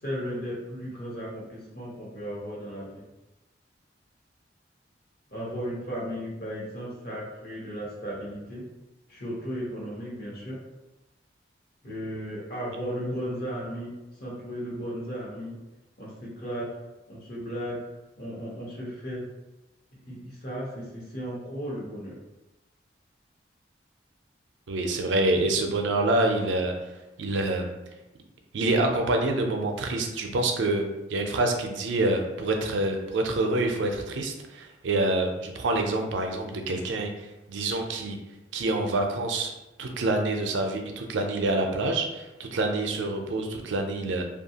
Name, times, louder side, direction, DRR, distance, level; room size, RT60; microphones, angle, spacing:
voice 1, 0.0-3.0 5.3-8.6 9.1-10.6 11.8-15.6 16.0-16.7 17.1-17.8 18.2-19.2 20.0-22.2, equal, 55° left, -5 dB, 0.9 m, -35 dB
voice 2, 24.7-26.7 27.2-27.7 28.5-38.2 38.5-39.5 39.8-44.2, right 2 dB, 80° right, 3 dB, 0.4 m, -26 dB
2.7 x 2.3 x 2.8 m, 1.0 s
head